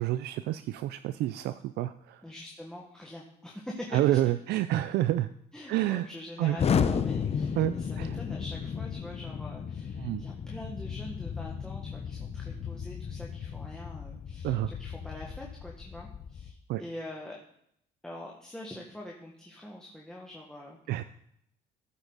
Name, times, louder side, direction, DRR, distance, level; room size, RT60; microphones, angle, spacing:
voice 1, 0.0-2.2 3.9-5.3 5.7-6.1 6.4-6.6 7.6-8.1 10.0-10.2 14.4-14.7 16.7-16.8 20.9-21.0, right 14 dB, 75° right, 12 dB, 0.5 m, -28 dB
voice 2, 2.2-4.2 5.5-17.4 18.0-20.8, left 1 dB, 5° left, -3 dB, 1.7 m, -44 dB
Explosion, 6.6-16.5, left 7 dB, 40° left, 0.8 m, -33 dB
14.0 x 8.2 x 4.1 m, 0.72 s
cardioid pair, 110°, 17 cm